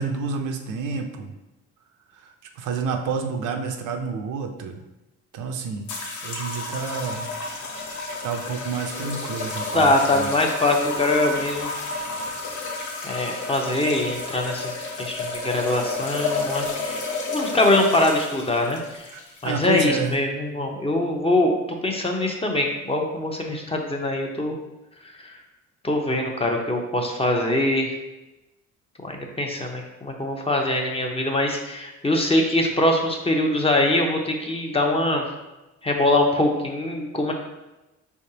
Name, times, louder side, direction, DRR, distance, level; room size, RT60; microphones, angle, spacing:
voice 1, 0.0-1.3 2.2-4.8 5.3-5.9 6.2-7.3 8.2-10.3 19.1-20.1, right 5 dB, 80° right, 5 dB, 0.6 m, -29 dB
sound 1, 5.9-20.1, left 3 dB, 70° left, 0.8 m, -31 dB
voice 2, 9.7-11.7 13.0-17.0 17.3-18.8 19.4-24.6 25.8-27.9 29.0-35.2 35.8-37.3, left 1 dB, 20° left, 2 dB, 0.7 m, -23 dB
4.5 x 3.5 x 2.8 m, 1.0 s
cardioid pair, 90°, 30 cm